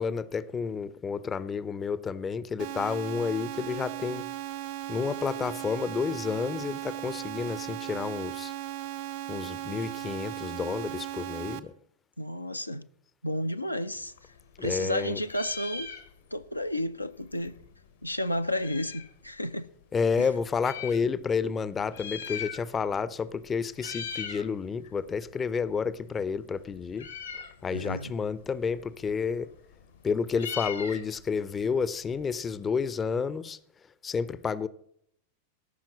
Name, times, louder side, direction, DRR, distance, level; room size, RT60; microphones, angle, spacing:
voice 1, 0.0-4.2 4.9-8.5 9.3-11.7 14.6-15.2 19.9-27.1 27.6-29.5 30.0-33.6 34.0-34.7, left 5 dB, 20° left, 0.5 m, -30 dB
sound 1, 2.6-11.6, right 13 dB, 50° right, 0.6 m, -37 dB
voice 2, 12.2-12.8 13.2-14.1 14.6-15.9 16.3-17.6 18.0-19.7 20.2-20.3 27.7-28.1, left 1 dB, 85° left, 0.4 m, -32 dB
Meow, 14.0-14.9 15.2-16.5 16.8-16.9 17.0-19.2 19.8-21.0 21.8-23.0 23.2-23.5 23.7-24.5 24.8-32.7, left 6 dB, 70° left, 1.0 m, -41 dB
13.0 x 5.9 x 6.0 m
figure-of-eight pair, 90°, 0 cm